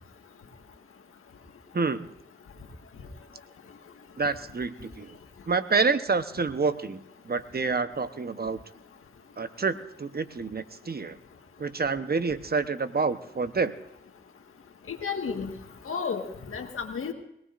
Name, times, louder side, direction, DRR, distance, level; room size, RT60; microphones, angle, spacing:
voice 1, 1.7-2.1 4.2-5.2 5.5-8.6 9.4-11.2 11.6-13.7, right 4 dB, 50° right, 11 dB, 1.0 m, -28 dB
voice 2, 14.9-15.5 15.9-17.1, left 6 dB, 85° left, 4 dB, 1.7 m, -32 dB
22.5 x 18.0 x 2.6 m, 0.79 s
cardioid pair, 45°, 21 cm